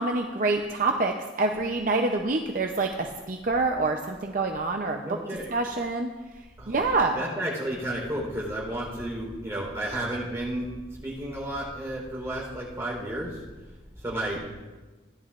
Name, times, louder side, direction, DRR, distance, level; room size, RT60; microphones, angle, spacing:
voice 1, 0.0-5.0 5.5-6.1 6.7-7.2, right 3 dB, 50° right, 3 dB, 0.6 m, -26 dB
voice 2, 5.0-5.5 6.6-6.8 7.2-10.7 11.0-13.4 14.0-14.4, right 1 dB, 15° right, -5 dB, 3.8 m, -32 dB
16.5 x 10.5 x 2.5 m, 1.2 s
head